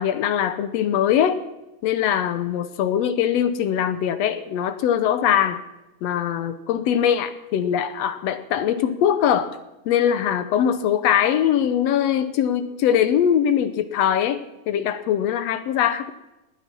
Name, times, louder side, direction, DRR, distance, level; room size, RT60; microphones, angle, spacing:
voice 1, 0.0-1.4 1.8-5.6 6.0-9.6 9.8-16.1, left 9 dB, 75° left, 11 dB, 1.6 m, -22 dB
19.0 x 9.0 x 6.1 m, 0.97 s
omnidirectional pair, 3.6 m